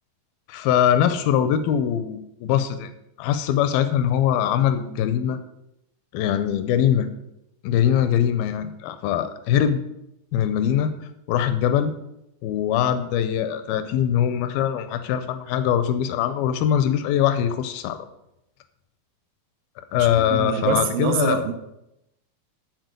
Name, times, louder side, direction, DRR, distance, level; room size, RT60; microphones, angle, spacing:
voice 1, 0.5-2.9 3.2-5.4 6.1-7.1 7.6-9.8 10.3-11.9 12.4-18.1 19.9-21.4, left 9 dB, 90° left, 10 dB, 2.5 m, -22 dB
voice 2, 19.9-21.5, right 8 dB, 80° right, 6 dB, 2.6 m, -25 dB
12.5 x 4.2 x 6.6 m, 0.84 s
omnidirectional pair, 4.1 m